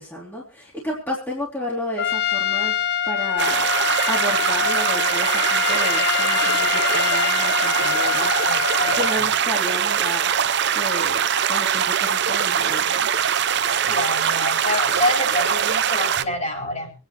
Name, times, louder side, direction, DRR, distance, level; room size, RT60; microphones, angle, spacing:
voice 1, 0.0-2.8 3.1-3.7 4.1-8.3 8.9-10.3 10.7-11.2 11.5-13.1, left 1 dB, 10° left, -5 dB, 3.1 m, -31 dB
Trumpet, 2.0-9.3, left 9 dB, 50° left, 0.8 m, -24 dB
sound 1, 3.4-16.2, right 8 dB, 55° right, 0.6 m, -22 dB
voice 2, 8.5-9.0 13.7-16.9, left 1 dB, 35° left, 1 dB, 4.5 m, -27 dB
27.0 x 9.7 x 3.0 m, 0.33 s
head